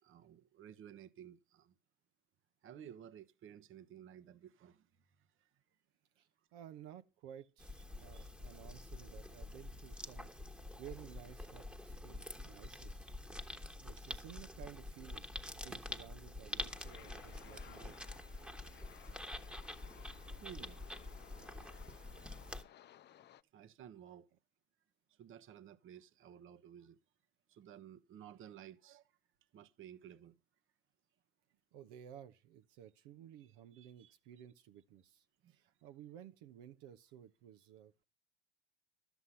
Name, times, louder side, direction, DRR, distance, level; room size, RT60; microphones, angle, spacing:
voice 1, 0.0-1.7 2.6-5.5 7.9-8.3 13.8-14.1 18.6-18.8 20.4-20.8 23.1-23.2 23.5-24.3 25.1-27.0 27.5-29.1 29.5-30.4 33.4-34.1 35.4-35.6, right 9 dB, 40° right, 1.1 m, -55 dB
voice 2, 6.2-13.0 13.8-18.0 31.7-38.0, right 10 dB, 60° right, 1.0 m, -55 dB
sound 1, 7.6-22.6, left 1 dB, 5° right, 1.4 m, -47 dB
sound 2, 16.7-23.4, left 11 dB, 30° left, 0.7 m, -60 dB
12.5 x 8.2 x 5.6 m
hypercardioid pair, 90°, 33 cm